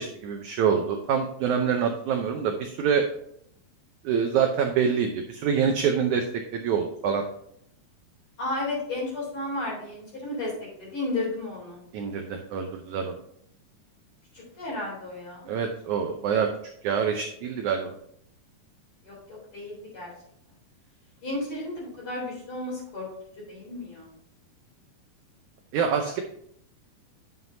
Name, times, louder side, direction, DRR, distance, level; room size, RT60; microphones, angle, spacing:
voice 1, 0.0-3.1 4.0-6.2 6.5-7.2 11.9-13.2 15.5-16.5 16.8-18.0 25.7-26.2, right 7 dB, 80° right, 3 dB, 1.7 m, -25 dB
voice 2, 8.4-10.5 10.8-11.8 14.3-15.5 19.0-20.1 21.2-23.1 23.5-24.1, left 2 dB, 35° left, -4 dB, 4.1 m, -33 dB
9.5 x 7.5 x 2.7 m, 0.68 s
omnidirectional pair, 4.4 m